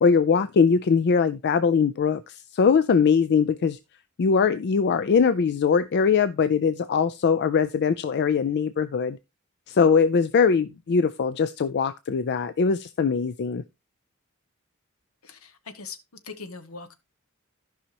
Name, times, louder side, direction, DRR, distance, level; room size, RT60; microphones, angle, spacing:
voice 1, 0.0-3.8 4.2-9.2 9.7-13.6, left 5 dB, 50° left, 0.4 m, -21 dB
voice 2, 15.2-16.0 16.2-17.0, left 4 dB, 75° left, 1.0 m, -40 dB
14.5 x 5.5 x 2.9 m
head